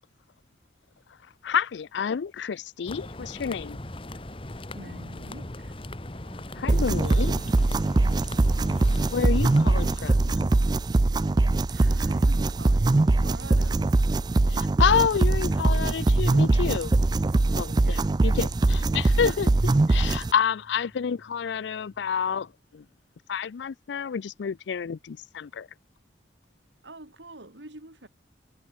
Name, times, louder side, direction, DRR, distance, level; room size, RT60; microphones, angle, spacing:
voice 1, 1.4-3.8 6.6-7.4 9.1-10.4 14.5-16.9 17.5-22.8 23.3-25.7, left 7 dB, 80° left, 0.4 m, -29 dB
sound 1, 2.9-10.0, left 1 dB, 30° left, 1.5 m, -39 dB
voice 2, 4.7-5.8 6.3-7.9 11.3-13.9 17.8-18.5 26.8-28.1, right 2 dB, 80° right, 3.6 m, -47 dB
sound 2, 6.7-20.3, right 2 dB, 25° right, 0.3 m, -22 dB
sound 3, 15.3-22.5, equal, 5° right, 3.3 m, -48 dB
head